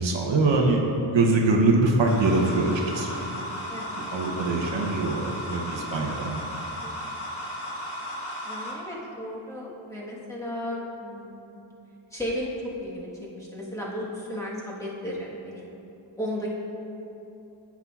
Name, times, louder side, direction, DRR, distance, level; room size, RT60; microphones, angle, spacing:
voice 1, 0.0-3.2 4.0-6.4, right 2 dB, 65° right, 0 dB, 0.9 m, -23 dB
sound 1, 2.1-8.7, equal, 80° left, 1.4 m, -35 dB
voice 2, 3.7-4.0 6.8-7.0 8.4-11.6 12.1-15.6 16.2-16.5, equal, 5° left, -6 dB, 1.4 m, -34 dB
9.6 x 7.3 x 2.4 m, 2.9 s
wide cardioid pair, 95°, 48 cm